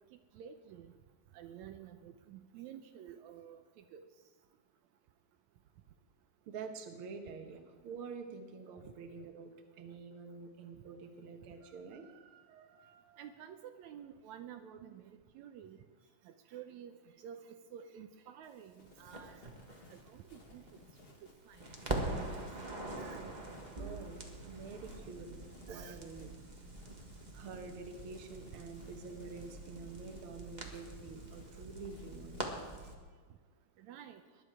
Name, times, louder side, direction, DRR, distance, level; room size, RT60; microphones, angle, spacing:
voice 1, 0.1-0.9 1.3-4.1 8.8-8.9 13.2-15.8 16.3-17.4 17.7-19.5 19.9-20.7 21.5-22.4 23.0-23.2 25.7-26.0 33.8-34.2, right 9 dB, 80° right, 7 dB, 2.0 m, -51 dB
voice 2, 6.5-13.4 23.1-23.2 23.8-26.3 27.3-32.6, right 4 dB, 55° right, 5 dB, 1.9 m, -48 dB
sound 1, 18.8-32.5, left 2 dB, 35° left, 1.0 m, -59 dB
Crackle, 19.1-21.3 21.6-32.9, right 2 dB, 25° right, 0.9 m, -44 dB
20.0 x 11.0 x 4.8 m, 1.5 s
omnidirectional pair, 3.3 m